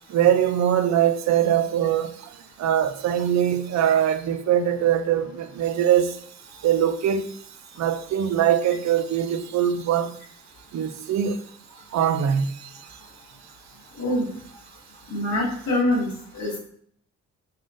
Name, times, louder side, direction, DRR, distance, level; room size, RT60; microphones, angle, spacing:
voice 1, 0.1-2.3 2.6-6.2 6.6-7.3 7.8-10.1 10.7-11.4 11.9-12.7, right 10 dB, 65° right, 0.4 m, -22 dB
voice 2, 15.1-16.6, left 1 dB, 70° left, 1.0 m, -24 dB
3.6 x 3.5 x 2.6 m
cardioid pair, 70°, 30 cm